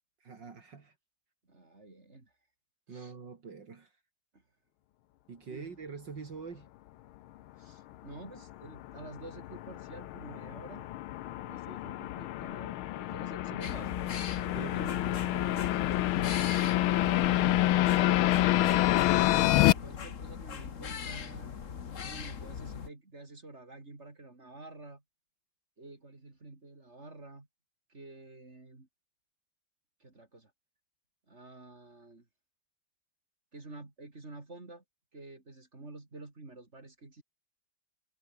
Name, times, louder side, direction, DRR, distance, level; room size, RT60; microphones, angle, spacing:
voice 1, 0.2-0.9 2.9-3.9 5.3-6.7 14.5-15.2, right 5 dB, 60° right, 3.0 m, -44 dB
voice 2, 1.5-2.3 2.9-3.1 5.5-5.7 7.6-10.9 11.3-14.0 14.6-15.8 16.1-16.2 17.0-19.2 19.7-21.6 22.0-25.0 25.8-27.5 27.9-28.9 30.0-30.5 31.3-32.3 33.5-34.8 35.1-37.2, right 2 dB, 30° right, 3.7 m, -49 dB
sound 1, 8.2-19.7, left 15 dB, 80° left, 1.5 m, -28 dB
sound 2, 13.6-22.9, left 7 dB, 40° left, 1.5 m, -39 dB
omnidirectional pair, 2.3 m